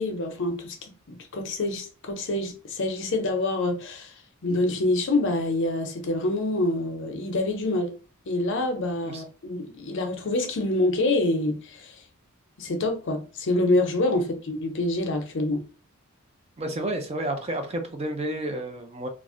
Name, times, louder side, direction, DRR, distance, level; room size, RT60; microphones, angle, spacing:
voice 1, 0.0-4.1 4.4-7.9 8.3-12.0 12.6-15.6, left 2 dB, 60° left, 0.6 m, -26 dB
voice 2, 16.6-19.1, right 1 dB, 30° right, 0.5 m, -30 dB
2.4 x 2.0 x 3.7 m
head